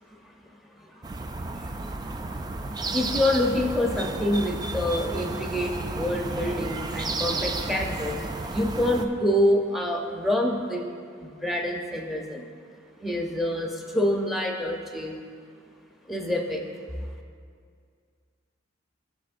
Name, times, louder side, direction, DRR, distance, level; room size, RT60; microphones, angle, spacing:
voice 1, 0.8-1.9 2.2-2.3 2.8-10.8 11.2-12.4 13.0-15.2 16.1-16.6, left 1 dB, ahead, 0 dB, 0.7 m, -27 dB
sound 1, 1.0-9.1, right 2 dB, 20° right, 0.3 m, -32 dB
15.5 x 6.2 x 2.5 m, 2.2 s
head